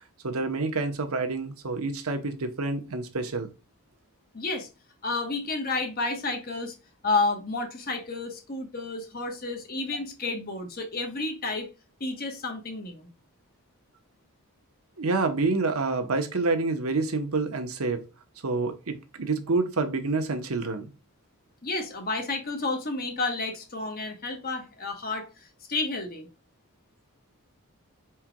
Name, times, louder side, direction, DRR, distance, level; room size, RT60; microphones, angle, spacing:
voice 1, 0.2-3.5 15.0-18.0 18.4-20.9, right 3 dB, 85° right, 1.0 m, -28 dB
voice 2, 4.3-4.7 5.0-6.7 7.0-11.7 12.0-13.1 21.6-25.3 25.7-26.3, left 3 dB, 45° left, 1.2 m, -31 dB
4.8 x 4.5 x 2.3 m
head